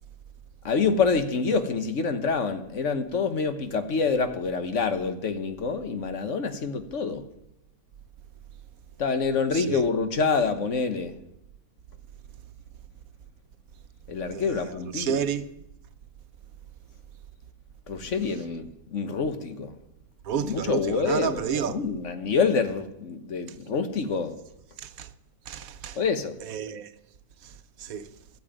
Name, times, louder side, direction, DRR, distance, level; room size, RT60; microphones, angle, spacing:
voice 1, 0.6-7.2 9.0-11.2 14.1-15.2 17.9-19.7 20.4-24.4 25.9-26.4, left 5 dB, 60° left, 1.5 m, -27 dB
voice 2, 9.5-9.8 14.3-15.5 20.2-21.8 24.8-25.1 25.5-26.0 26.4-26.9 27.4-28.1, right 8 dB, 85° right, 1.3 m, -31 dB
13.0 x 8.7 x 9.0 m
omnidirectional pair, 1.4 m